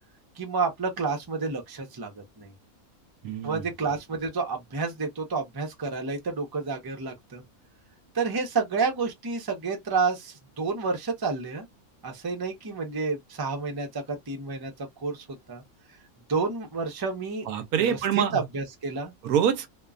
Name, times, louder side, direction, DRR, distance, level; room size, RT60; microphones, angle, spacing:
voice 1, 0.4-2.5 3.4-7.4 8.1-11.7 12.0-14.7 15.0-15.6 16.3-17.5 17.8-19.1, right 4 dB, 25° right, 0.6 m, -30 dB
voice 2, 3.2-3.6 17.5-18.4 19.2-19.7, right 8 dB, 90° right, 1.1 m, -25 dB
2.9 x 2.2 x 2.4 m
omnidirectional pair, 1.5 m